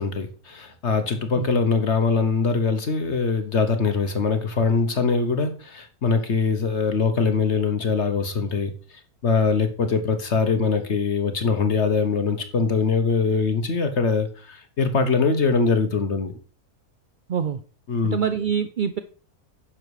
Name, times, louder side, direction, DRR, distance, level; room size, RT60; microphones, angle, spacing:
voice 1, 0.0-8.7 9.2-16.4 17.9-18.2, left 4 dB, 50° left, 8 dB, 1.3 m, -22 dB
voice 2, 17.3-17.6 18.1-19.0, right 7 dB, 65° right, 11 dB, 0.4 m, -25 dB
10.5 x 7.3 x 4.8 m, 0.39 s
omnidirectional pair, 1.5 m